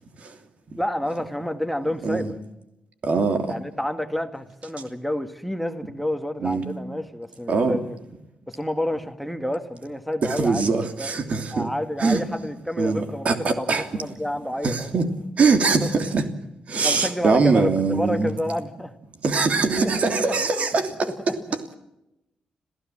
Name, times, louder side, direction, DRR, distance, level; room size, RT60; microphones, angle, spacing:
voice 1, 0.8-2.3 3.5-8.0 8.5-11.1 11.5-13.3 13.6-14.9 15.8-15.9 16.8-18.9 19.8-19.9 21.0-21.3, left 1 dB, ahead, 1.8 m, -29 dB
voice 2, 2.0-2.3 3.0-3.5 6.4-6.7 7.5-7.8 10.2-11.7 12.0-12.2 12.8-13.9 14.6-15.1 15.4-16.2 16.7-18.3 19.2-21.1, right 4 dB, 55° right, 3.0 m, -22 dB
26.5 x 15.5 x 7.4 m
cardioid pair, 70°, 3 cm